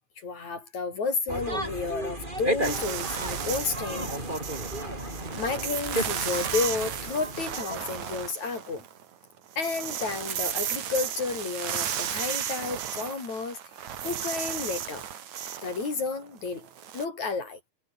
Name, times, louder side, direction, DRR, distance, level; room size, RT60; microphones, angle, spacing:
voice 1, 0.2-4.1 5.3-8.8 9.6-13.6 14.0-15.1 15.6-16.7 16.9-17.6, left 4 dB, 65° left, 7.1 m, -31 dB
sound 1, 1.3-8.1, right 1 dB, 15° right, 7.5 m, -34 dB
sound 2, 2.6-9.0 9.4-17.1, right 9 dB, 70° right, 3.3 m, -34 dB
omnidirectional pair, 3.5 m